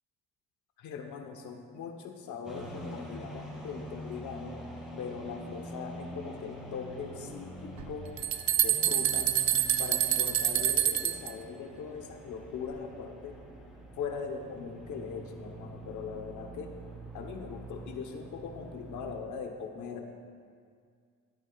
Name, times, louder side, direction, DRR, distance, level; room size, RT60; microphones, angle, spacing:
voice 1, 0.8-4.5 5.0-8.1 8.6-9.3 9.8-13.4 14.0-16.7 17.1-20.2, left 6 dB, 75° left, 3 dB, 1.0 m, -40 dB
sound 1, 2.4-19.2, right 1 dB, ahead, 2.3 m, -45 dB
sound 2, 7.8-11.3, right 11 dB, 70° right, 0.6 m, -27 dB
13.5 x 10.0 x 2.4 m, 2.1 s
cardioid pair, 90°, 30 cm